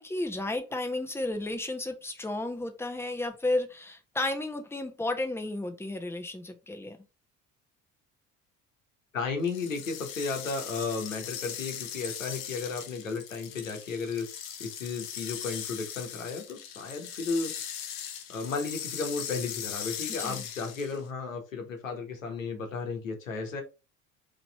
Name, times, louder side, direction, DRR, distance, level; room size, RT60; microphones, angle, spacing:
voice 1, 0.0-7.0 20.2-20.4, left 2 dB, 5° left, 6 dB, 1.0 m, -33 dB
voice 2, 9.1-14.3 14.6-17.5 18.3-23.6, left 4 dB, 90° left, 4 dB, 1.1 m, -34 dB
sound 1, 9.4-21.1, left 9 dB, 65° left, 0.9 m, -39 dB
4.2 x 3.1 x 4.0 m, 0.28 s
figure-of-eight pair, 55°, 38 cm